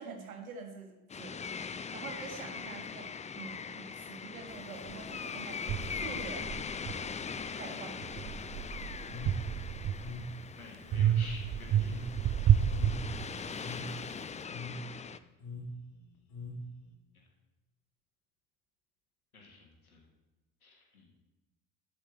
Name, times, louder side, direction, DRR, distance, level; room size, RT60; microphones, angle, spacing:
voice 1, 0.0-1.4 1.7-6.5 7.6-8.0, right 5 dB, 80° right, 4 dB, 2.0 m, -46 dB
sound 1, 1.1-15.2, left 6 dB, 15° left, 0.6 m, -41 dB
sound 2, 4.9-5.0 5.7-7.5 8.0-10.3 10.9-13.7, right 9 dB, 35° right, 0.7 m, -30 dB
sound 3, 9.1-16.9, left 1 dB, 40° left, 3.2 m, -43 dB
voice 2, 10.6-12.2 13.5-14.6 19.3-20.0 20.6-21.1, left 3 dB, 85° left, 0 dB, 2.7 m, -51 dB
12.0 x 10.5 x 4.4 m, 1.1 s
figure-of-eight pair, 60°, 42 cm